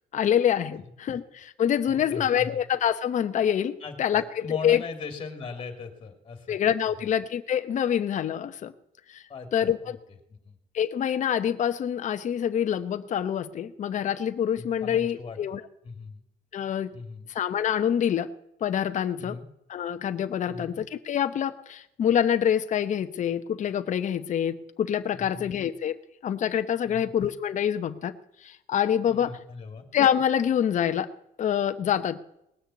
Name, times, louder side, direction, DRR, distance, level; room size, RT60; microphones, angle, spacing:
voice 1, 0.1-4.8 6.5-8.7 9.1-9.2 9.5-10.0 10.7-15.6 16.5-16.9 17.3-18.3 18.6-19.3 19.7-26.0 26.2-28.2 28.4-29.4 29.9-31.1 31.4-32.2, left 9 dB, 45° left, 9 dB, 0.9 m, -26 dB
voice 2, 0.7-1.2 1.9-2.6 3.8-6.6 7.0-7.1 9.3-10.5 14.6-15.4 15.8-16.2 16.9-17.3 19.2-19.5 20.5-20.8 25.1-25.6 26.8-27.1 29.1-29.9, left 4 dB, 30° left, 6 dB, 2.8 m, -40 dB
19.0 x 6.5 x 8.5 m, 0.80 s
cardioid pair, 110°, 17 cm